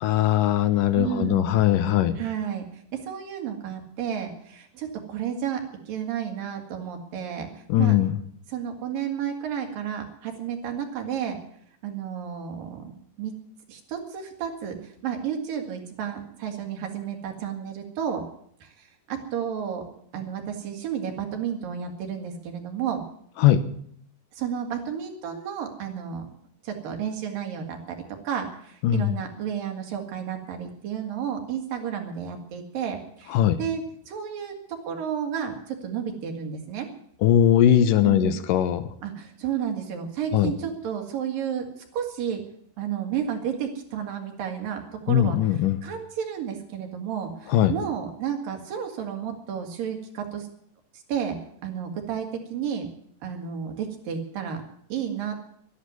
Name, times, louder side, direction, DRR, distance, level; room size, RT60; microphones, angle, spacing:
voice 1, 0.0-2.2 7.7-8.1 23.4-23.6 28.8-29.2 33.3-33.6 37.2-38.9 40.3-40.5 45.1-45.8 47.5-47.7, left 11 dB, 80° left, 11 dB, 2.6 m, -20 dB
voice 2, 0.9-1.6 2.2-7.5 7.8-8.0 8.5-11.4 11.8-12.9 13.2-13.3 13.7-18.2 18.6-19.8 20.1-23.0 24.3-26.3 26.6-36.9 38.0-38.4 39.0-42.4 42.8-50.5 51.1-51.4 51.6-52.9 53.2-54.6 54.9-55.5, right 8 dB, 90° right, 3 dB, 4.0 m, -32 dB
12.0 x 11.5 x 9.6 m, 0.65 s
omnidirectional pair, 3.9 m